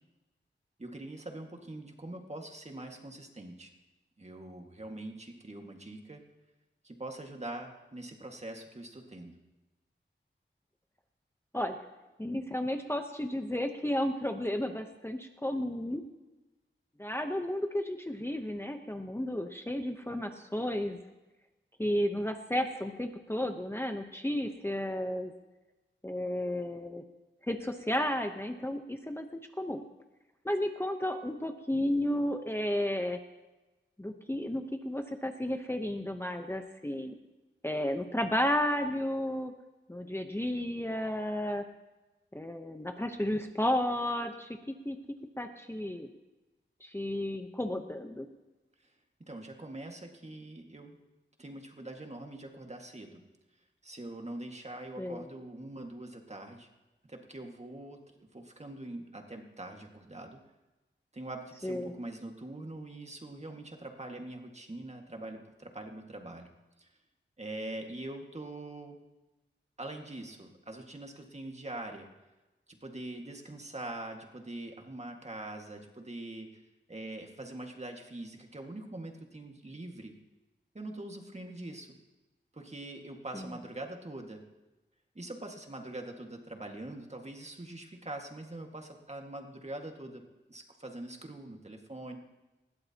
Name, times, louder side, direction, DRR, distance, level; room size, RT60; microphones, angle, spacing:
voice 1, 0.8-3.7 4.2-6.3 6.8-9.3 49.2-51.0 51.4-53.2 53.8-56.7 57.0-58.0 58.3-60.4 61.1-66.5 66.8-66.9 67.4-69.0 69.8-72.1 72.7-76.6 76.9-80.1 80.7-81.9 82.5-84.4 85.2-90.2 90.5-92.2, right 1 dB, 35° right, 3 dB, 1.9 m, -43 dB
voice 2, 12.2-16.0 17.0-21.0 21.8-25.3 26.0-27.0 27.5-29.8 30.4-33.2 34.0-37.1 37.6-39.5 39.9-41.6 42.3-44.5 44.8-45.0 45.4-46.1 46.8-48.3 55.0-55.3 61.6-61.9 83.3-83.6, left 1 dB, 10° left, 5 dB, 1.0 m, -33 dB
20.5 x 16.5 x 3.0 m, 1.1 s
wide cardioid pair, 85°, 20 cm